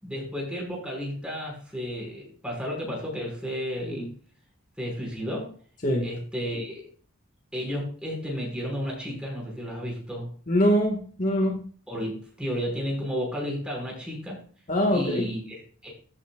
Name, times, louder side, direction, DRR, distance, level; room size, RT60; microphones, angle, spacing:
voice 1, 0.0-4.1 4.8-5.5 6.0-6.8 7.5-10.3 11.9-14.4 14.9-15.9, equal, 5° right, -2 dB, 5.9 m, -32 dB
voice 2, 10.5-11.6 14.7-15.3, equal, 40° left, 1 dB, 2.0 m, -23 dB
14.5 x 8.7 x 2.5 m, 0.43 s
head